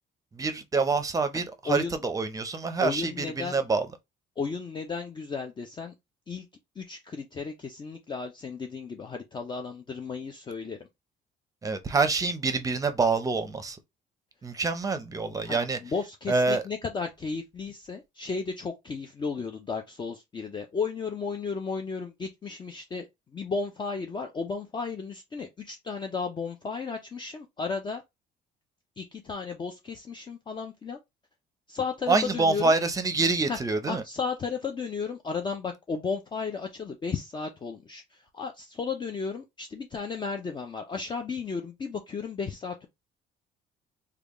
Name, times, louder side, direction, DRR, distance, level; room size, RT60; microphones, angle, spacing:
voice 1, 0.3-3.9 11.6-13.8 14.4-15.8 16.3-16.6 32.1-34.0, right 3 dB, 20° right, 0.6 m, -26 dB
voice 2, 1.3-2.0 2.8-3.6 4.4-5.9 6.3-6.5 6.8-10.8 15.4-23.1 23.3-28.0 29.0-31.0 31.7-32.7 33.5-33.6 33.8-42.9, left 5 dB, 25° left, 0.5 m, -34 dB
3.4 x 2.3 x 3.6 m
cardioid pair, 110°, 17 cm